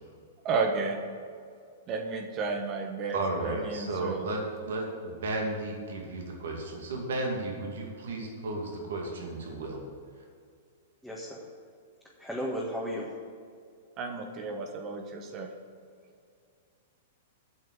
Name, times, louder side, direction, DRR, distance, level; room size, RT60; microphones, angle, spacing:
voice 1, 0.4-1.0 1.9-4.2 14.0-15.5, right 4 dB, 35° right, 3 dB, 1.3 m, -32 dB
voice 2, 3.1-9.8, right 2 dB, 70° right, 0 dB, 2.4 m, -34 dB
voice 3, 11.0-11.5 12.2-13.1, equal, ahead, -5 dB, 1.6 m, -34 dB
8.5 x 6.5 x 8.3 m, 2.2 s
hypercardioid pair, 115°, 0 cm